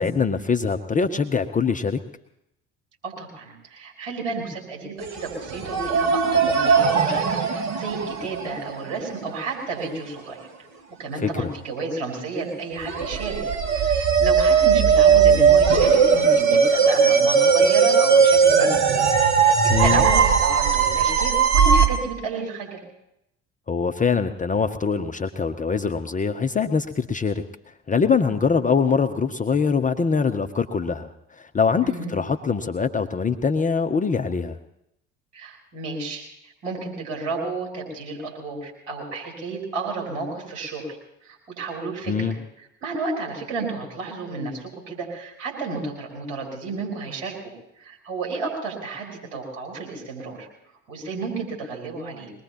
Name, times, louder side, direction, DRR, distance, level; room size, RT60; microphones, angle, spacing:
voice 1, 0.0-2.0 11.2-11.5 19.7-20.0 23.7-27.4 27.9-34.6 42.1-42.4, left 5 dB, 20° left, 7 dB, 0.8 m, -23 dB
voice 2, 3.0-10.5 11.0-13.4 13.7-19.0 19.8-22.8 31.8-32.1 35.3-41.0 41.2-42.4 42.8-47.4 47.8-50.5 50.9-52.3, right 3 dB, 75° right, 0 dB, 4.9 m, -32 dB
sound 1, 5.0-5.1 5.5-9.0 12.9-21.9, right 6 dB, 45° right, 2.6 m, -18 dB
22.5 x 19.5 x 3.0 m, 0.82 s
figure-of-eight pair, 60°, 37 cm